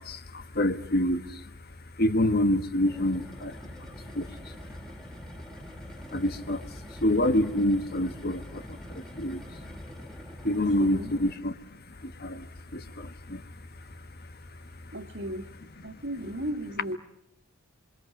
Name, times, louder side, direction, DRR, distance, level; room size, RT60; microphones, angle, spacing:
voice 1, 0.0-1.4 2.0-3.7 4.1-4.6 6.1-9.7 10.4-11.5 12.0-12.5 12.7-13.4, left 1 dB, 45° left, 11 dB, 1.4 m, -27 dB
sound 1, 2.7-11.5, equal, ahead, 3.3 m, -45 dB
voice 2, 10.5-11.1 14.9-15.5 15.8-17.0, right 1 dB, 55° right, 7 dB, 2.0 m, -36 dB
27.5 x 26.5 x 7.2 m, 0.77 s
head